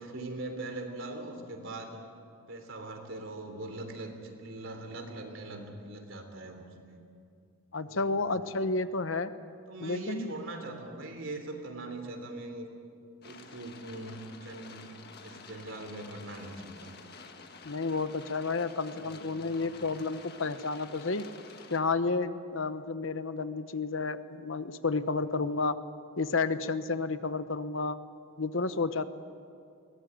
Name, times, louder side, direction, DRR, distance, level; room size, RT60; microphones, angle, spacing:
voice 1, 0.0-2.0 2.5-7.0 7.8-8.4 9.7-12.7 13.2-17.0 19.0-19.2 19.5-19.8, right 2 dB, 65° right, 5 dB, 3.4 m, -41 dB
voice 2, 7.7-9.3 9.8-10.3 17.6-21.2 21.7-25.8 26.2-28.0 28.4-29.1, left 3 dB, 65° left, 12 dB, 1.0 m, -31 dB
sound 1, 13.2-21.8, left 4 dB, 50° left, 1.6 m, -50 dB
22.0 x 19.0 x 9.0 m, 2.4 s
head